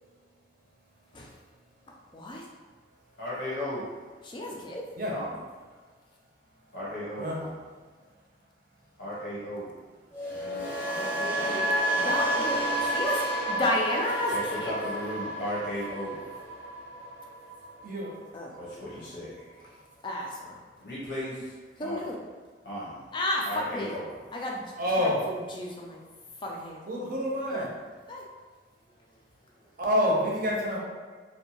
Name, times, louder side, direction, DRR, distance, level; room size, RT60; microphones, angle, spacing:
voice 1, 2.1-2.4 4.2-4.8 10.4-11.7 12.0-13.2 13.5-14.7 18.3-18.5 20.0-20.6 21.8-22.2 23.1-23.9 24.3-24.6 25.0-26.0 26.4-26.8 27.5-27.7 28.1-28.2, left 1 dB, 25° left, -1 dB, 0.3 m, -33 dB
voice 2, 3.2-3.9 5.1-5.4 6.7-7.6 9.0-9.6 14.3-16.2 18.5-19.7 20.8-21.5 21.8-22.1 22.6-23.1 23.4-24.2, equal, 80° left, -9 dB, 0.8 m, -36 dB
sound 1, 10.1-18.2 18.5-18.9, right 1 dB, 10° right, 0.8 m, -30 dB
voice 3, 17.8-18.1 24.8-25.2 26.9-27.7 29.8-30.8, equal, 50° right, -3 dB, 0.6 m, -27 dB
2.6 x 2.1 x 2.8 m, 1.5 s
head